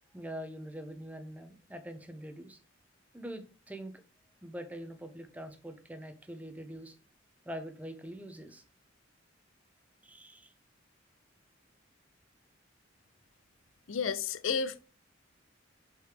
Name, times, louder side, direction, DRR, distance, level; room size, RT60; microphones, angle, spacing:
voice 1, 0.1-2.6 3.1-3.9 4.4-7.0 7.4-8.6 10.0-10.5, equal, 10° right, 0.9 m, -44 dB
voice 2, 13.9-14.8, left 6 dB, 90° left, 0.6 m, -31 dB
6.2 x 4.9 x 3.5 m
head